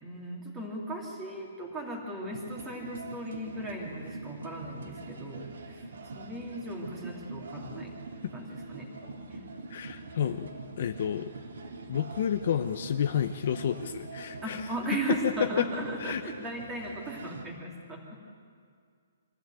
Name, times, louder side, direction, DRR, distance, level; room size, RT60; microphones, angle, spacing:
voice 1, 0.0-5.9 6.1-8.0 8.3-8.9 9.3-9.4 14.4-18.2, right 1 dB, 10° right, -1 dB, 2.8 m, -37 dB
sound 1, 2.3-17.4, right 3 dB, 65° right, 3.2 m, -44 dB
voice 2, 9.7-10.5 10.8-11.3 11.9-14.7 15.1-15.7 16.0-16.3, left 8 dB, 40° left, 8 dB, 0.9 m, -30 dB
24.5 x 15.0 x 9.2 m, 2.2 s
hypercardioid pair, 180°, 0 cm